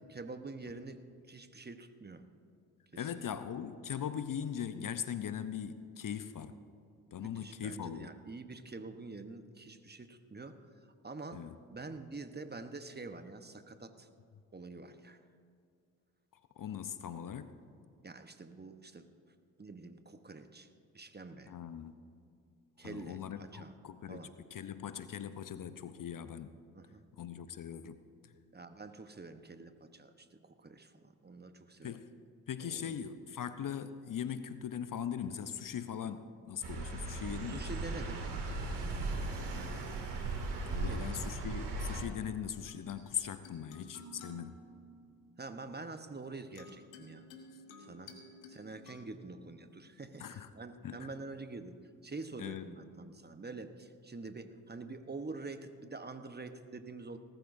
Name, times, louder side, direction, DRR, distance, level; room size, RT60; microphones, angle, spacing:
voice 1, 0.1-1.0 1.3-2.2 2.9-3.3 7.2-10.7 11.0-14.1 14.5-15.2 18.0-19.1 19.6-20.7 20.9-21.6 22.8-23.7 24.1-24.3 26.7-27.0 28.5-32.0 32.6-33.0 37.5-38.2 39.5-39.8 40.8-41.1 45.4-47.3 47.8-48.1 48.5-51.8 52.0-57.2, right 3 dB, 20° right, 9 dB, 1.1 m, -46 dB
voice 2, 3.0-6.5 7.1-8.1 11.3-11.5 16.6-17.5 21.5-21.9 22.8-24.2 24.5-26.5 27.2-28.0 28.2-28.3 31.8-32.1 32.5-37.6 40.7-44.6 50.2-50.5 50.8-51.1 52.4-52.7, left 8 dB, 45° left, 11 dB, 0.8 m, -40 dB
sound 1, 36.6-42.0, right 2 dB, 65° right, 2.5 m, -37 dB
sound 2, 39.3-41.1 42.5-51.0, left 1 dB, 85° left, 1.5 m, -56 dB
19.0 x 13.0 x 2.7 m, 2.4 s
hypercardioid pair, 45°, 44 cm